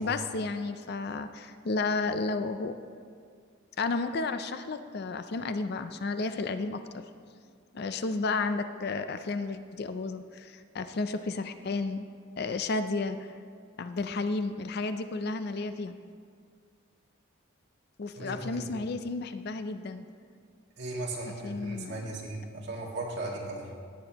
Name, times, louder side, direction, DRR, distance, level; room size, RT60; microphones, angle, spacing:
voice 1, 0.0-2.7 3.8-6.8 7.7-12.1 12.4-13.2 13.8-16.0 18.0-20.1 21.4-22.0, left 3 dB, 50° left, 10 dB, 0.4 m, -32 dB
voice 2, 18.2-18.7 20.8-23.7, right 2 dB, 55° right, -2 dB, 1.8 m, -37 dB
17.0 x 8.5 x 2.9 m, 2.1 s
head